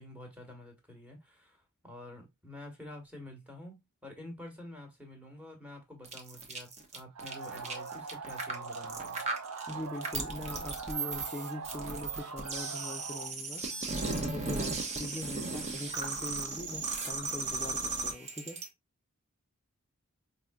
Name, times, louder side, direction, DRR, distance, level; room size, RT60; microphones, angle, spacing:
voice 1, 0.0-9.2, left 1 dB, 5° right, 1.2 m, -48 dB
sound 1, 6.0-18.7, right 3 dB, 30° right, 0.8 m, -36 dB
sound 2, 7.1-13.3, right 4 dB, 90° right, 0.7 m, -42 dB
voice 2, 9.7-13.6 14.1-18.6, left 1 dB, 15° left, 0.5 m, -42 dB
4.7 x 2.7 x 2.2 m
head